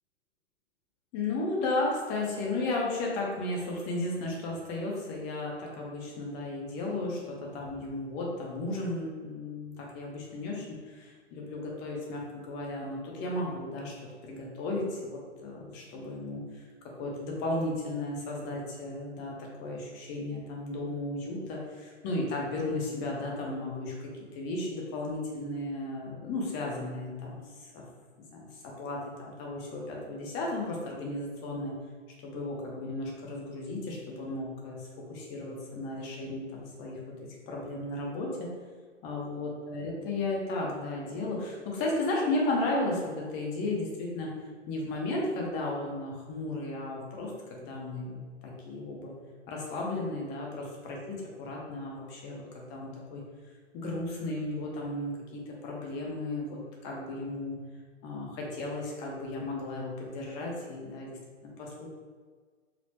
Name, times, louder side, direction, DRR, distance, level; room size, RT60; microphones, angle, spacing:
voice 1, 1.1-13.9 14.2-16.6 17.0-27.8 28.3-31.7 32.2-34.8 35.1-37.0 37.5-38.5 39.0-44.3 44.7-49.1 49.5-53.2 53.7-57.6 58.0-61.2 61.4-61.9, left 2 dB, 30° left, -2 dB, 0.8 m, -34 dB
4.1 x 2.1 x 2.9 m, 1.5 s
hypercardioid pair, 115°, 36 cm